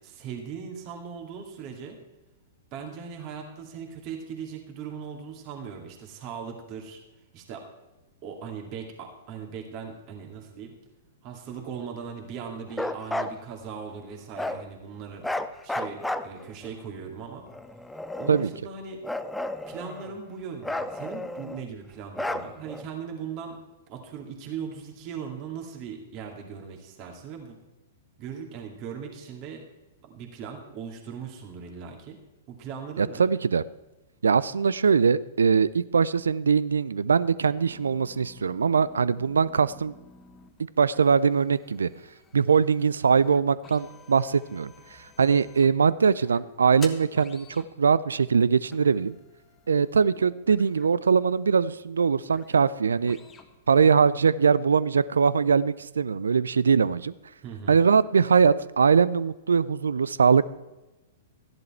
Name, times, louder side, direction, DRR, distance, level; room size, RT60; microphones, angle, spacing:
voice 1, 0.0-2.0 2.7-7.0 7.3-7.6 8.2-10.8 11.2-15.3 15.6-17.4 18.2-19.0 19.7-23.6 23.9-27.6 28.2-29.6 30.0-32.2 32.5-33.3 57.4-57.8, right 6 dB, 40° right, 2 dB, 2.3 m, -39 dB
Bark, 12.7-13.4 14.4-14.6 15.2-16.7 17.5-18.6 19.0-20.2 20.6-21.7 22.1-22.8, left 1 dB, 5° left, 0.6 m, -32 dB
voice 2, 33.0-33.6 34.2-39.9 40.8-41.9 42.3-44.7 45.2-49.1 49.7-53.2 53.7-57.1 57.7-60.4, right 6 dB, 75° right, 19 dB, 0.4 m, -22 dB
sound 1, 37.6-54.0, left 4 dB, 20° left, 1.4 m, -52 dB
14.0 x 10.5 x 4.4 m, 1.0 s
figure-of-eight pair, 110°, 0 cm